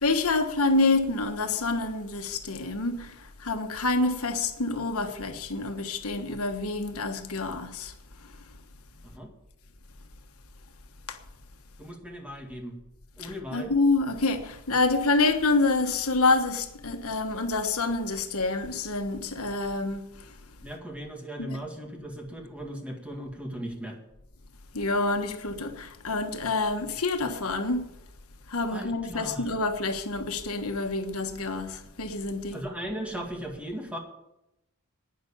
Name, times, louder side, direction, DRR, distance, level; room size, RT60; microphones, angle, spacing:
voice 1, 0.0-3.1 3.4-7.9 11.1-11.2 13.5-20.0 21.4-21.6 24.7-27.9 28.5-32.6, left 3 dB, 80° left, 1.4 m, -27 dB
voice 2, 11.8-12.8 13.2-13.7 20.6-24.0 28.7-29.5 32.5-34.0, equal, 5° right, 2.0 m, -37 dB
11.5 x 9.6 x 7.3 m
head